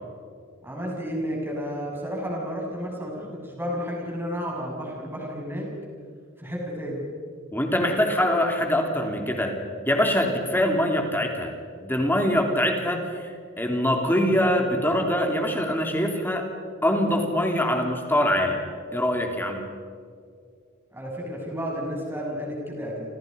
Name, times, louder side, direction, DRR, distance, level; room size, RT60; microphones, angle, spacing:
voice 1, 0.6-5.7 6.4-7.1 20.9-23.0, equal, 10° right, -2 dB, 7.0 m, -32 dB
voice 2, 7.5-9.5 9.9-11.5 11.8-16.4 16.8-18.6 18.9-19.6, left 1 dB, 10° left, 2 dB, 3.4 m, -23 dB
30.0 x 27.0 x 5.4 m, 2.2 s
head